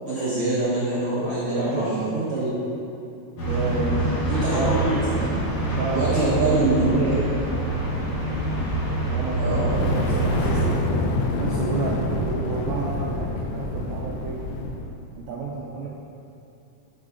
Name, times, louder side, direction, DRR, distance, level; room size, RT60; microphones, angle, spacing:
voice 1, 0.0-2.6 4.3-4.9 5.9-7.2 9.4-9.7, right 2 dB, 55° right, -11 dB, 1.5 m, -24 dB
voice 2, 1.4-2.1 3.5-4.1 4.5-4.8 5.8-7.1 9.1-14.4 15.2-15.9, right 4 dB, 80° right, -3 dB, 1.7 m, -31 dB
sound 1, 3.4-10.7, right 2 dB, 60° left, 2.2 m, -25 dB
Fire, 9.6-14.9, left 2 dB, 80° left, 1.9 m, -27 dB
7.9 x 6.2 x 2.6 m, 2.7 s
omnidirectional pair, 3.8 m